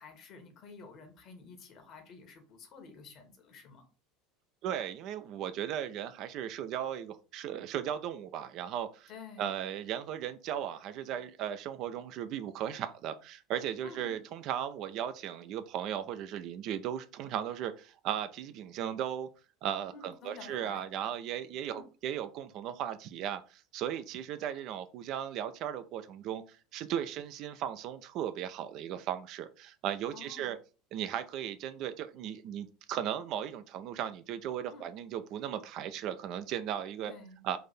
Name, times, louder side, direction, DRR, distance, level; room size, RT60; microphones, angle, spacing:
voice 1, 0.0-3.9 9.1-9.5 13.8-14.2 19.9-20.8 21.7-21.8 30.1-30.5 34.7-34.8 37.0-37.4, left 4 dB, 45° left, 5 dB, 1.1 m, -50 dB
voice 2, 4.6-9.1 9.4-19.3 19.6-30.6 30.9-37.1 37.4-37.6, right 10 dB, 45° right, 10 dB, 0.4 m, -36 dB
3.9 x 2.6 x 4.1 m, 0.35 s
figure-of-eight pair, 70°, 0 cm